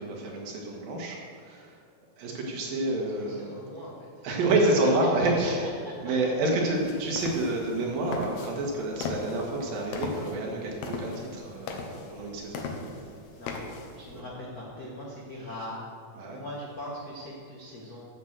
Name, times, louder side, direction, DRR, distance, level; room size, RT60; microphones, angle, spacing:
voice 1, 0.0-1.8 2.2-3.6 4.2-5.7 6.0-12.7 14.1-14.3 16.2-16.4, right 2 dB, 75° right, -1 dB, 3.5 m, -28 dB
voice 2, 2.6-4.4 5.0-5.3 13.4-13.6 13.9-15.8 16.3-18.0, equal, 60° left, -5 dB, 0.9 m, -41 dB
sound 1, 6.8-14.2, left 4 dB, 85° left, 2.8 m, -39 dB
9.3 x 7.5 x 7.5 m, 2.3 s
omnidirectional pair, 4.1 m